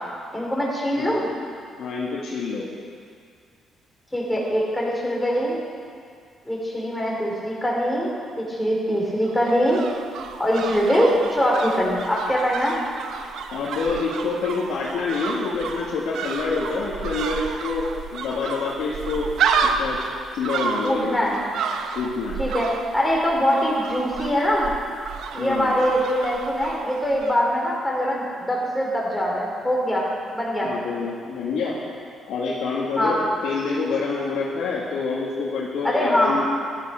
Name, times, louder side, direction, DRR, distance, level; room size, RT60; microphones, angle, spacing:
voice 1, 0.3-1.3 4.1-5.6 6.4-9.8 10.4-12.8 20.8-21.3 22.4-24.7 25.3-30.1 30.3-30.7 33.0-33.2 35.8-36.4, equal, 5° left, -4 dB, 4.9 m, -23 dB
voice 2, 1.8-2.7 13.5-19.3 19.6-20.0 20.3-21.2 22.0-22.4 25.4-25.8 30.6-31.8 32.3-36.5, left 4 dB, 80° left, -6 dB, 2.1 m, -27 dB
sound 1, 9.2-27.4 27.7-27.8, right 6 dB, 75° right, 1.0 m, -31 dB
13.5 x 13.0 x 6.5 m, 2.1 s
cardioid pair, 90°, 0 cm